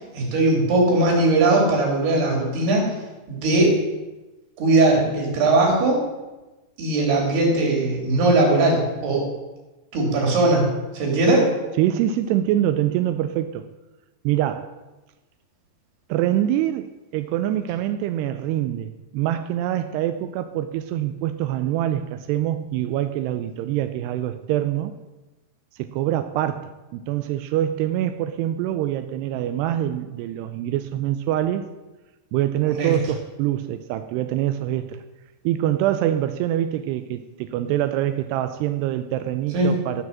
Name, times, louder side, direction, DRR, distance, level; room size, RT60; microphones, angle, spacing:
voice 1, 0.1-2.9 3.3-3.7 4.6-6.0 6.8-9.3 9.9-10.7 10.9-11.5 32.7-32.9 39.5-39.7, right 2 dB, 60° right, 0 dB, 4.9 m, -19 dB
voice 2, 11.8-13.7 14.2-14.8 16.1-24.9 25.8-31.7 32.3-35.0 35.4-40.0, right 12 dB, 90° right, 9 dB, 2.4 m, -25 dB
14.0 x 6.2 x 7.3 m, 1.1 s
omnidirectional pair, 5.3 m